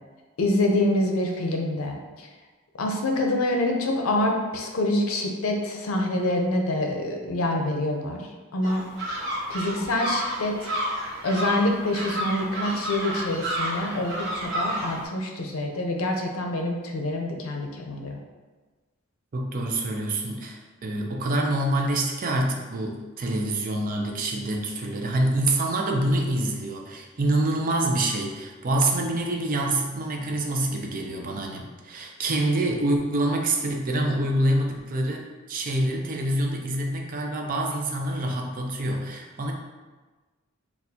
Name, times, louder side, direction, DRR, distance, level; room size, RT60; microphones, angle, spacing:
voice 1, 0.4-2.3 2.8-8.2 8.5-8.8 9.5-10.7 11.2-18.2, left 1 dB, 90° left, 2 dB, 0.6 m, -26 dB
sound 1, 8.6-15.0, equal, 60° right, 1.0 m, -31 dB
voice 2, 19.3-39.5, right 1 dB, 40° right, 1 dB, 0.4 m, -26 dB
4.2 x 2.3 x 2.7 m, 1.3 s
head